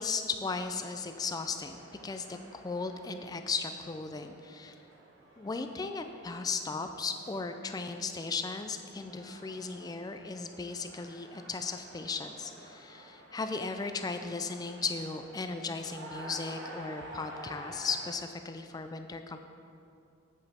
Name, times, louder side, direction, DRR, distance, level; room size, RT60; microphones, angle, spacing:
voice 1, 0.0-4.7 5.4-19.4, left 4 dB, 20° left, 7 dB, 0.3 m, -36 dB
sound 1, 0.9-18.1, right 1 dB, 60° right, 1.2 m, -51 dB
8.1 x 5.3 x 4.2 m, 2.5 s
head